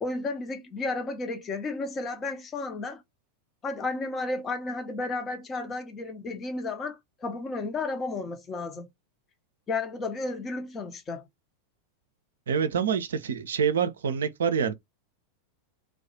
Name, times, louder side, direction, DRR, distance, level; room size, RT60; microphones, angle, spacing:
voice 1, 0.0-3.0 3.6-8.9 9.7-11.2, left 3 dB, 25° left, 0.6 m, -33 dB
voice 2, 12.5-14.7, right 7 dB, 65° right, 0.4 m, -26 dB
2.3 x 2.1 x 2.7 m
figure-of-eight pair, 90°, 0 cm